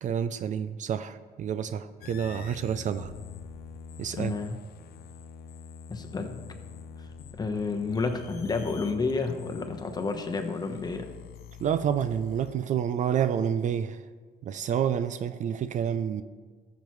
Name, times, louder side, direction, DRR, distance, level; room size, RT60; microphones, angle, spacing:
voice 1, 0.0-3.1 4.0-4.4 11.6-14.0 14.5-16.2, right 8 dB, 50° right, 12 dB, 0.4 m, -29 dB
sound 1, 2.0-12.5, left 6 dB, 70° left, 0.6 m, -45 dB
voice 2, 4.2-4.6 5.9-6.4 7.3-11.1, left 4 dB, 25° left, 5 dB, 1.1 m, -30 dB
13.5 x 7.2 x 3.2 m, 1.5 s
cardioid pair, 110°, 17 cm